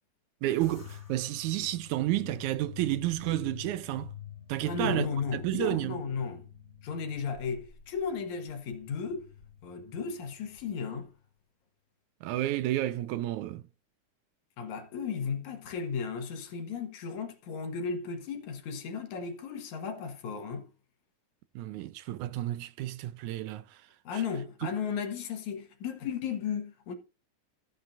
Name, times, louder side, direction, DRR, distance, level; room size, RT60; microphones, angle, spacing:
voice 1, 0.4-4.1 4.5-6.0 12.2-13.6 21.6-23.8 24.1-24.2, right 15 dB, 80° right, 2.0 m, -31 dB
sound 1, 0.6-11.2, left 10 dB, 30° left, 1.9 m, -48 dB
voice 2, 4.6-6.5 6.8-9.3 9.6-11.1 14.6-20.7 24.0-27.0, left 6 dB, 70° left, 2.7 m, -35 dB
14.0 x 9.2 x 2.5 m
omnidirectional pair, 3.5 m